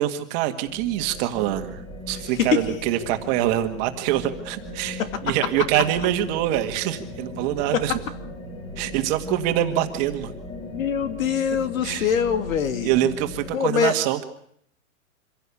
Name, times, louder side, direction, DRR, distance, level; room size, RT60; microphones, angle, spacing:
voice 1, 0.0-1.8 2.1-8.0 8.8-10.3 11.8-12.1 12.8-14.2, right 12 dB, 30° right, 7 dB, 1.9 m, -24 dB
sound 1, 0.7-13.5, left 1 dB, 15° left, 3.2 m, -38 dB
voice 2, 2.3-2.6 10.7-12.9 13.5-14.0, left 7 dB, 70° left, 10 dB, 2.9 m, -23 dB
25.5 x 16.5 x 8.5 m, 0.67 s
hypercardioid pair, 155°, 42 cm